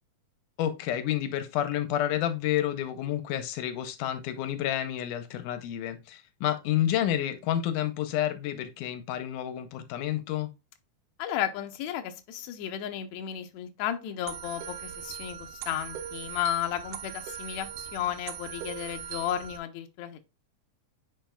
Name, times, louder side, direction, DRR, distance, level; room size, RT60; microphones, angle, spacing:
voice 1, 0.6-10.5, left 11 dB, 90° left, 2.2 m, -30 dB
voice 2, 11.2-20.3, left 11 dB, 75° left, 1.9 m, -33 dB
sound 1, 14.3-19.6, right 9 dB, 80° right, 2.1 m, -40 dB
9.0 x 4.7 x 2.3 m
omnidirectional pair, 3.6 m